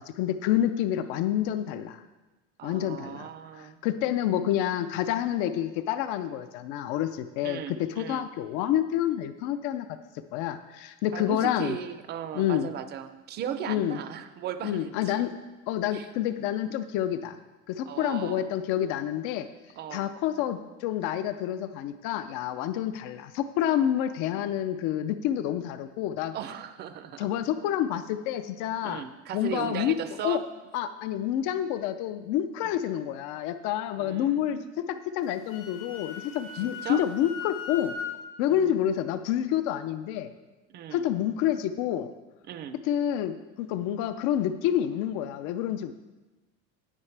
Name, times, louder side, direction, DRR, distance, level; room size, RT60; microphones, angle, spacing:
voice 1, 0.0-2.0 2.6-3.3 3.6-7.6 8.0-10.0 10.3-11.8 12.3-12.7 13.7-14.0 14.6-15.3 15.7-17.4 17.7-19.5 19.9-26.3 27.2-29.0 29.3-30.0 30.2-30.4 30.7-37.9 38.4-40.3 40.9-42.1 42.8-45.9, left 11 dB, 60° left, 11 dB, 0.5 m, -28 dB
voice 2, 2.6-3.8 7.4-8.3 11.1-15.2 15.9-16.1 17.8-18.5 19.8-20.1 26.3-27.3 28.8-30.4 32.6-32.7 34.0-35.0 36.5-37.0 38.6-39.2 40.7-41.1 42.4-42.8, right 9 dB, 30° right, 10 dB, 0.5 m, -37 dB
Wind instrument woodwind instrument, 35.2-38.2, left 7 dB, 85° left, 1.6 m, -38 dB
17.0 x 6.6 x 3.3 m, 1.1 s
cardioid pair, 170°, 35 cm